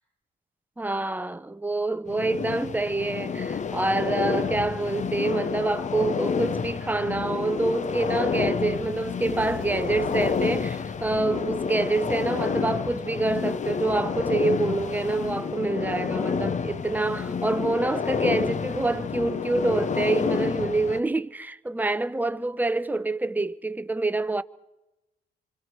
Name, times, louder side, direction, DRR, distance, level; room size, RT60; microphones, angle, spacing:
voice 1, 0.8-24.4, right 2 dB, 10° right, 0.7 m, -26 dB
sound 1, 2.1-21.0, left 6 dB, 35° left, 0.8 m, -29 dB
Fire, 8.1-12.7, left 11 dB, 75° left, 0.7 m, -44 dB
26.0 x 26.0 x 4.6 m
cardioid pair, 90°, 20 cm